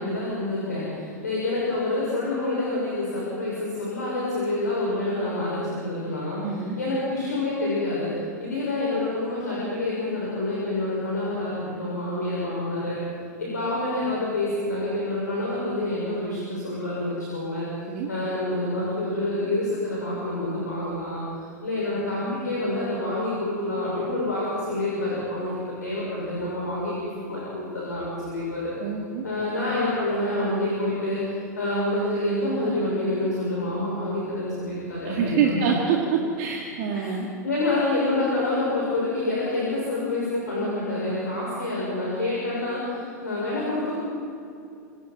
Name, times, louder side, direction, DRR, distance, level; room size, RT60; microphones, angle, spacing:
voice 1, 0.0-13.0 13.4-17.7 18.1-25.5 25.8-28.7 29.2-35.6 36.9-44.0, left 2 dB, 80° left, -6 dB, 6.3 m, -27 dB
voice 2, 6.4-6.8 17.9-18.1 28.8-29.2 35.1-37.3, right 7 dB, 50° right, -1 dB, 2.5 m, -25 dB
27.0 x 27.0 x 4.5 m, 2.5 s
figure-of-eight pair, 90°, 9 cm